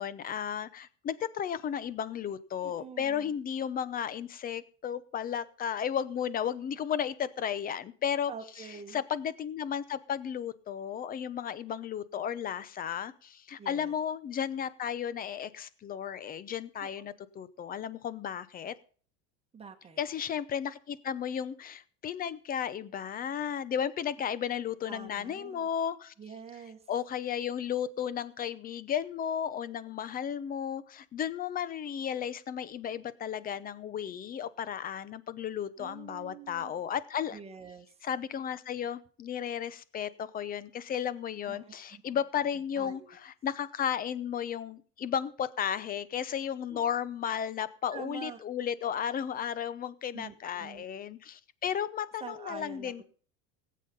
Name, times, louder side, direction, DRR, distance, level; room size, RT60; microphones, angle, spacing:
voice 1, 0.0-8.3 8.6-18.7 20.0-26.1 26.9-37.4 38.0-53.0, left 8 dB, 25° left, 17 dB, 0.8 m, -34 dB
voice 2, 2.6-3.3 8.3-9.0 13.6-14.0 16.8-17.1 19.5-20.0 24.9-25.7 26.2-26.8 35.8-36.7 37.3-37.9 41.4-42.0 42.8-43.2 46.7-46.8 47.9-48.4 50.1-50.8 52.2-53.0, right 6 dB, 20° right, 5 dB, 1.8 m, -46 dB
17.0 x 8.6 x 5.5 m, 0.44 s
supercardioid pair, 140°, 34 cm